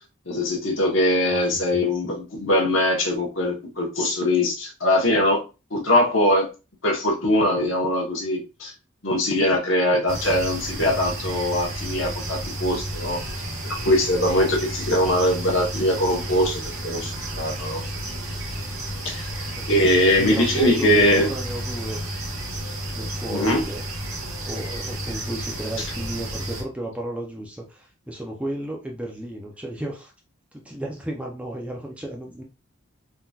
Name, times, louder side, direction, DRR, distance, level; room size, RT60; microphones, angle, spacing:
voice 1, 0.3-5.4 5.7-6.5 6.8-8.7 9.0-13.2 13.8-17.1 17.4-17.8 19.0-19.3 19.7-21.3 23.3-23.6, left 1 dB, 65° left, 0 dB, 1.1 m, -21 dB
voice 2, 1.3-1.8 19.6-22.0 22.9-23.8 24.5-30.1 30.5-32.4, right 1 dB, 5° right, -1 dB, 0.5 m, -34 dB
sound 1, 10.1-26.6, right 1 dB, 90° right, 1.6 m, -31 dB
3.7 x 2.8 x 2.3 m, 0.30 s
head